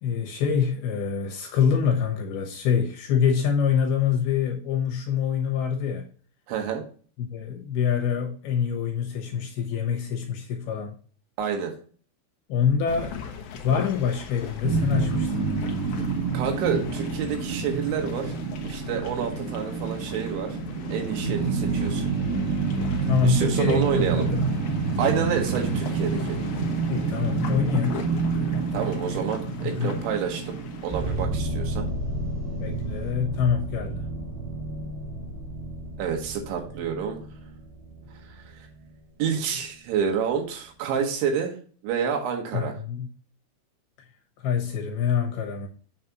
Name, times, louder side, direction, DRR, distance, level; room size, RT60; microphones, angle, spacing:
voice 1, 0.0-6.1 7.2-10.9 12.5-13.2 13.5-15.5 23.0-24.5 26.9-28.0 29.6-30.0 32.6-34.0 42.5-43.1 44.4-45.7, left 7 dB, 70° left, 2.7 m, -25 dB
voice 2, 6.5-6.8 11.4-11.8 16.3-18.4 18.6-20.6 20.9-22.0 23.2-24.3 25.0-26.4 28.7-30.6 30.8-31.9 36.0-37.2 38.2-38.7 39.2-41.6 41.8-42.8, right 7 dB, 75° right, 3.8 m, -28 dB
sound 1, 12.9-31.3, left 7 dB, 85° left, 1.7 m, -41 dB
sound 2, 14.6-31.8, right 4 dB, 40° right, 1.2 m, -28 dB
sound 3, 30.9-39.7, right 1 dB, 55° right, 3.9 m, -33 dB
7.7 x 7.3 x 2.9 m
omnidirectional pair, 5.5 m